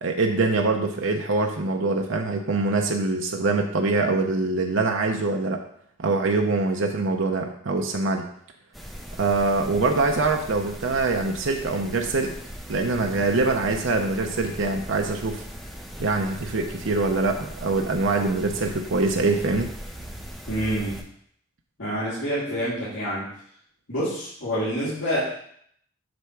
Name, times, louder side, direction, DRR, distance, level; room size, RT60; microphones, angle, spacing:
voice 1, 0.0-5.6 6.0-8.3 9.2-12.3 12.7-15.4 16.0-19.7, right 3 dB, 80° right, 3 dB, 0.7 m, -24 dB
sound 1, 8.7-21.0, equal, ahead, 0.7 m, -39 dB
voice 2, 20.5-21.0 21.8-23.3 23.9-25.2, equal, 80° left, -13 dB, 3.0 m, -27 dB
7.9 x 3.5 x 5.7 m, 0.66 s
head